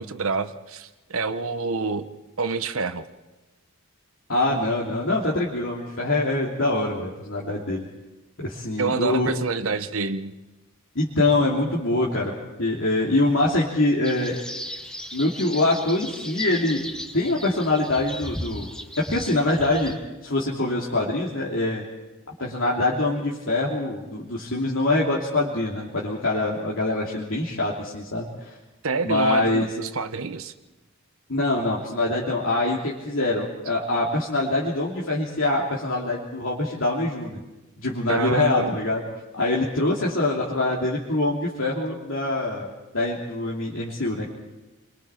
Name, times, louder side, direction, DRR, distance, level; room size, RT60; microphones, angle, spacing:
voice 1, 0.0-3.0 8.8-10.3 28.8-30.5 38.1-38.7, right 4 dB, 65° right, 10 dB, 1.0 m, -27 dB
voice 2, 4.3-7.8 8.4-9.3 10.9-12.3 12.6-14.4 15.1-16.8 17.1-18.7 19.1-20.0 20.2-21.8 22.4-28.5 29.0-29.7 31.3-37.4 37.8-39.0 39.3-44.3, left 2 dB, 60° left, -4 dB, 2.9 m, -24 dB
sound 1, 14.0-19.9, equal, 5° left, 1.3 m, -36 dB
29.5 x 23.5 x 4.5 m, 1.1 s
head